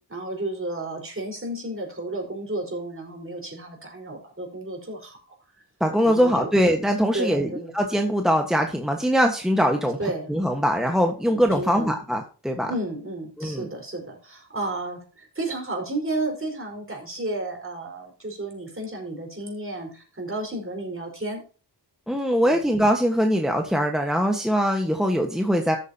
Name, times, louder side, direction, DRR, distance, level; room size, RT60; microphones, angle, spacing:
voice 1, 0.1-5.4 6.0-6.5 7.1-7.7 10.0-10.3 11.2-12.0 12.6-21.4 22.4-22.6, right 2 dB, 30° right, 1 dB, 4.7 m, -32 dB
voice 2, 5.8-10.0 10.3-12.7 13.4-13.7 22.1-25.8, equal, ahead, 2 dB, 1.3 m, -22 dB
13.0 x 8.4 x 2.8 m, 0.36 s
wide cardioid pair, 95°, 41 cm